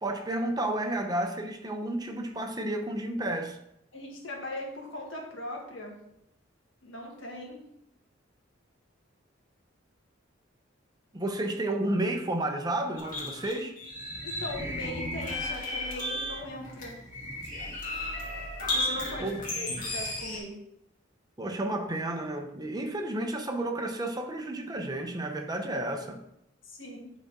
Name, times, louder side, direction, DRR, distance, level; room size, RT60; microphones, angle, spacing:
voice 1, 0.0-3.6 11.1-13.7 19.2-19.6 21.4-26.2, right 1 dB, 20° right, 0.8 m, -31 dB
voice 2, 3.9-6.0 6.8-7.6 14.2-17.0 18.7-20.6 26.6-27.1, left 1 dB, 80° left, 1.9 m, -39 dB
sound 1, 13.0-20.4, left 1 dB, 45° left, 2.0 m, -34 dB
10.5 x 4.2 x 3.8 m
head